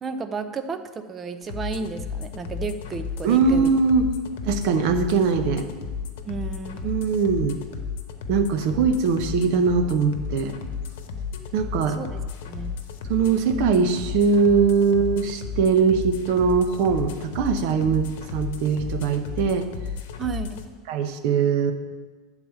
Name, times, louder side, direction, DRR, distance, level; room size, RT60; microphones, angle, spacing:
voice 1, 0.0-3.7 6.3-6.9 12.0-12.8 20.2-20.6, right 5 dB, 20° right, 9 dB, 0.5 m, -32 dB
sound 1, 1.4-20.6, left 6 dB, 85° left, 0.9 m, -33 dB
voice 2, 3.2-4.1 4.4-5.7 6.8-7.6 8.3-10.6 11.5-12.0 13.1-19.7 20.9-21.7, right 5 dB, 55° right, 8 dB, 0.7 m, -21 dB
8.9 x 4.1 x 7.1 m, 1.4 s
supercardioid pair, 160°, 0 cm